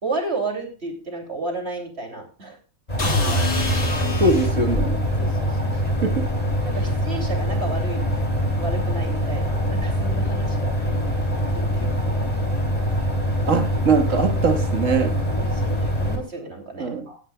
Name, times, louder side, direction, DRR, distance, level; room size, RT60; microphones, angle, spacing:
voice 1, 0.0-2.6 5.2-5.7 6.6-8.1 8.6-10.7 11.5-11.7 12.1-12.6 15.4-17.2, right 3 dB, 50° right, 3.3 m, -32 dB
sound 1, 2.9-16.2, equal, 30° left, 3.3 m, -24 dB
sound 2, 3.0-4.9, equal, 55° left, 2.5 m, -25 dB
voice 2, 4.2-5.0 6.0-6.3 13.5-15.2 16.8-17.1, right 3 dB, 65° right, 2.0 m, -21 dB
18.0 x 10.0 x 2.3 m
omnidirectional pair, 1.4 m